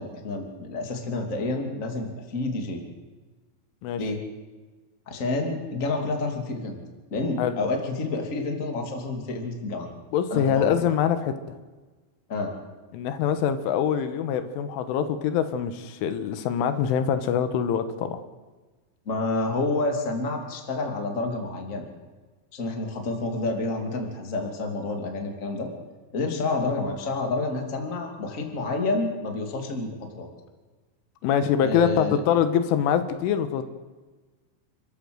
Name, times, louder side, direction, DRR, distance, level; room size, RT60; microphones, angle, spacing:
voice 1, 0.0-2.8 4.0-4.2 5.1-6.8 7.1-9.9 10.3-10.7 12.3-12.5 19.1-21.9 22.5-25.7 26.1-30.3 31.6-32.2, left 2 dB, 25° left, 3 dB, 2.1 m, -29 dB
voice 2, 10.1-11.6 12.9-18.2 31.2-33.6, left 8 dB, 80° left, 10 dB, 3.7 m, -24 dB
29.0 x 13.0 x 7.9 m, 1.3 s
omnidirectional pair, 5.6 m